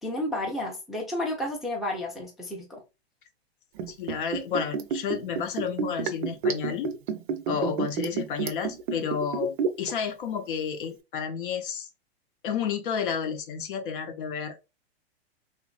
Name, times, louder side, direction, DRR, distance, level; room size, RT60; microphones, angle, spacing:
voice 1, 0.0-2.8, left 1 dB, ahead, 0.5 m, -31 dB
Liquid, 3.8-9.9 10.2-10.3, right 5 dB, 50° right, 0.6 m, -29 dB
voice 2, 3.9-6.9 7.5-11.9 12.4-14.6, left 7 dB, 55° left, 0.7 m, -31 dB
3.0 x 2.5 x 2.4 m
hypercardioid pair, 115°, 33 cm